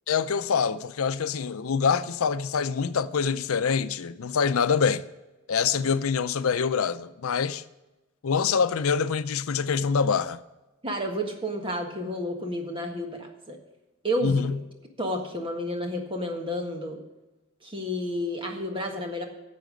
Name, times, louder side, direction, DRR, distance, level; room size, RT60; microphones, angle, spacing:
voice 1, 0.1-5.0 5.5-7.6 8.2-10.4 14.2-14.6, left 6 dB, 90° left, 0.5 m, -25 dB
voice 2, 10.8-13.6 14.0-14.4 15.0-17.0 17.6-19.2, equal, 25° right, 1.6 m, -31 dB
11.5 x 7.5 x 5.1 m
head